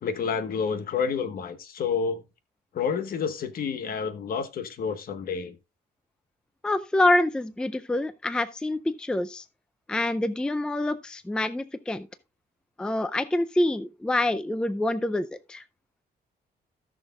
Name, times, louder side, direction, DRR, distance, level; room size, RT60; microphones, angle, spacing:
voice 1, 0.0-2.2 2.7-5.5, left 6 dB, 60° left, 1.2 m, -29 dB
voice 2, 6.6-9.4 9.9-12.1 12.8-15.6, left 1 dB, 5° left, 0.4 m, -26 dB
17.0 x 6.4 x 2.3 m
cardioid pair, 145°, 17 cm